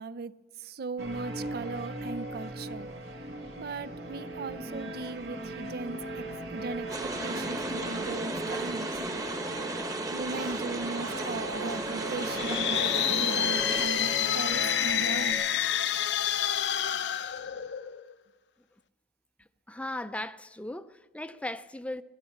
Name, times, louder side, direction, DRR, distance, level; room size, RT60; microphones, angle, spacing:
voice 1, 0.0-2.9 3.6-9.0 10.1-15.4, right 3 dB, 60° right, 0.5 m, -38 dB
sound 1, 1.0-15.3, right 1 dB, 80° right, 2.2 m, -38 dB
sound 2, 6.9-13.9, right 2 dB, 20° right, 1.2 m, -34 dB
sound 3, 12.2-18.1, left 10 dB, 75° left, 0.6 m, -28 dB
voice 2, 19.7-22.0, left 1 dB, 5° left, 0.4 m, -37 dB
18.5 x 13.5 x 5.8 m
head